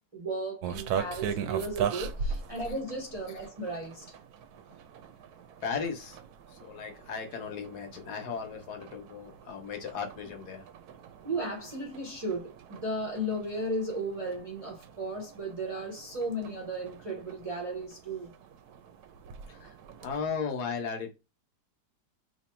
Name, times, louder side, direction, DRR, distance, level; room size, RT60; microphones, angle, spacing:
voice 1, 0.1-4.0 11.2-18.3, right 1 dB, 35° right, 0.6 m, -35 dB
sound 1, 0.6-20.4, right 7 dB, 70° right, 1.0 m, -40 dB
voice 2, 5.6-6.2 6.5-10.6 19.5-19.7 20.0-21.2, left 6 dB, 70° left, 1.3 m, -36 dB
2.9 x 2.6 x 4.2 m
omnidirectional pair, 1.8 m